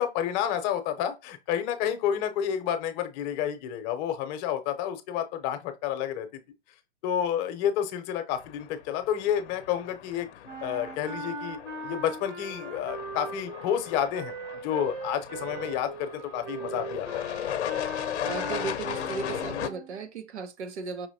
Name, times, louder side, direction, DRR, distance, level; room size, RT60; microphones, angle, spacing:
voice 1, 0.0-6.3 7.0-10.3 10.6-11.6 11.8-14.4 14.6-17.3, left 9 dB, 40° left, 0.8 m, -30 dB
sound 1, 8.4-19.7, left 10 dB, 70° left, 0.7 m, -37 dB
sound 2, 10.4-20.0, right 3 dB, 50° right, 1.3 m, -39 dB
voice 2, 18.2-21.1, right 5 dB, 80° right, 1.0 m, -36 dB
5.6 x 2.9 x 2.7 m
hypercardioid pair, 120°, 34 cm